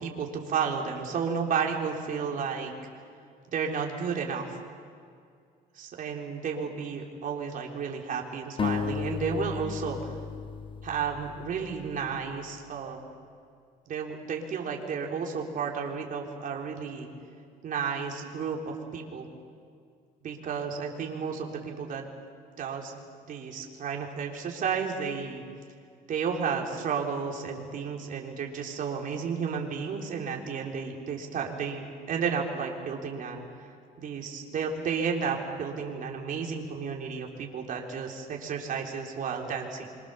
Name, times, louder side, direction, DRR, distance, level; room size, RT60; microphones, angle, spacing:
voice 1, 0.0-2.7 3.5-4.6 5.7-10.1 10.8-13.0 13.9-17.1 17.6-19.3 20.2-22.1 22.6-23.0 23.2-25.4 26.1-33.5 34.0-39.9, right 6 dB, 55° right, 0 dB, 4.0 m, -32 dB
sound 1, 8.6-12.2, left 6 dB, 30° left, 1.0 m, -34 dB
27.5 x 24.5 x 7.1 m, 2.3 s
cardioid pair, 110°, 17 cm